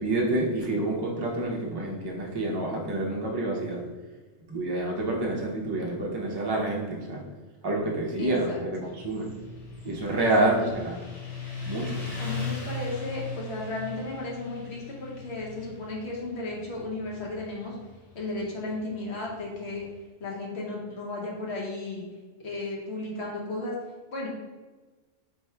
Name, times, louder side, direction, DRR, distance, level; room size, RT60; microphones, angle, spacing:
voice 1, 0.0-3.8 4.5-7.2 7.6-9.3 9.8-11.0 11.7-12.0, right 2 dB, 30° right, -2 dB, 0.5 m, -28 dB
voice 2, 8.2-8.6 10.2-10.5 12.2-17.7 18.1-19.9 20.2-22.0 22.4-23.7 24.1-24.3, left 2 dB, 60° left, -3 dB, 1.1 m, -34 dB
Motorcycle, 8.8-19.9, left 3 dB, 35° left, 0.7 m, -39 dB
3.5 x 2.3 x 4.3 m, 1.3 s
omnidirectional pair, 1.3 m